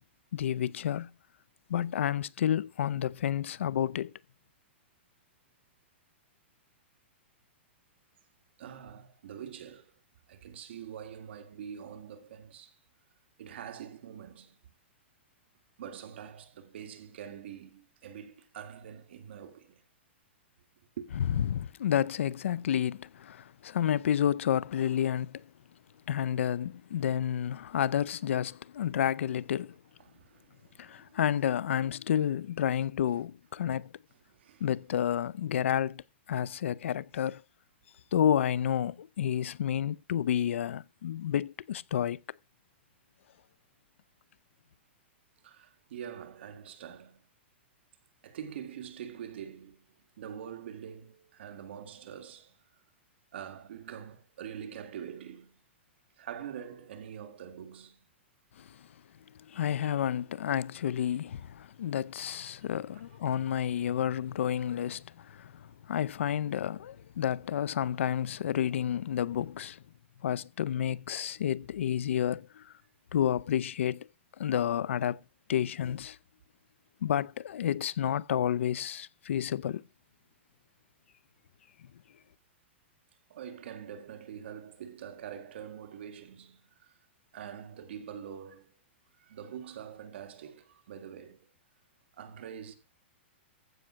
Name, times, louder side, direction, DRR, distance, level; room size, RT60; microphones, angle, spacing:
voice 1, 0.3-1.1 1.7-4.1 21.5-25.4 26.1-29.7 30.8-33.9 34.6-36.0 36.3-37.4 38.1-42.2 58.6-58.7 59.5-69.8 70.2-72.6 73.1-74.1 74.4-75.2 75.5-76.2 77.0-79.8, left 10 dB, 90° left, 0.5 m, -30 dB
voice 2, 8.6-9.9 10.3-12.8 13.4-14.6 15.8-19.8 21.0-21.1 30.0-31.2 33.7-33.8 34.3-34.7 45.4-47.2 48.2-49.9 50.2-52.6 53.3-55.6 56.2-58.0 83.3-86.9 87.3-88.7 89.2-91.5 92.2-92.7, right 8 dB, 60° right, 2.1 m, -44 dB
15.0 x 6.2 x 5.7 m
supercardioid pair, 170°, 7 cm